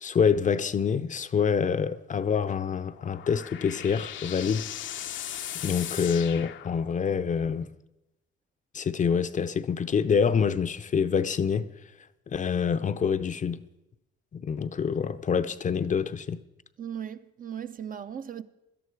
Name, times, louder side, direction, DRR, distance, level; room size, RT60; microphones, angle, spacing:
voice 1, 0.0-4.7 5.5-7.7 8.7-11.7 12.3-13.6 14.3-16.4, left 6 dB, 40° left, 0.6 m, -26 dB
sound 1, 2.8-7.2, left 11 dB, 75° left, 0.7 m, -38 dB
voice 2, 16.8-18.4, right 9 dB, 45° right, 0.7 m, -37 dB
17.0 x 12.0 x 4.7 m
cardioid pair, 90°, 20 cm